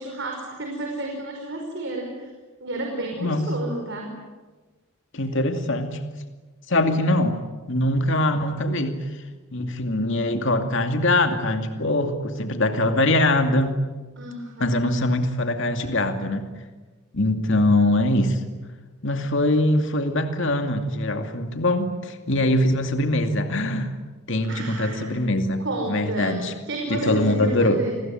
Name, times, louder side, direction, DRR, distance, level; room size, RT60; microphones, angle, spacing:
voice 1, 0.0-2.3 2.6-4.2 14.2-15.0 24.4-25.2 25.6-28.0, right 1 dB, 55° right, 1 dB, 5.2 m, -31 dB
voice 2, 5.1-6.0 6.7-7.4 7.7-9.0 9.5-13.8 14.6-16.5 17.1-18.6 19.0-23.9 24.3-26.5 26.9-27.8, left 1 dB, 60° left, 6 dB, 2.5 m, -22 dB
29.5 x 21.0 x 9.3 m, 1.2 s
head